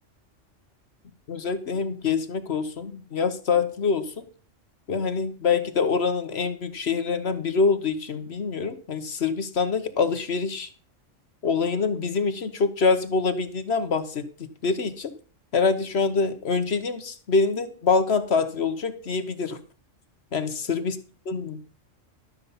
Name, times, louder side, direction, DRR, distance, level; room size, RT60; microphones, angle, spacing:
voice 1, 1.3-4.2 4.9-10.7 11.4-15.1 15.5-19.6 20.3-20.9 21.3-21.6, left 4 dB, 55° left, 10 dB, 1.2 m, -25 dB
12.5 x 7.0 x 5.4 m, 0.39 s
omnidirectional pair, 1.3 m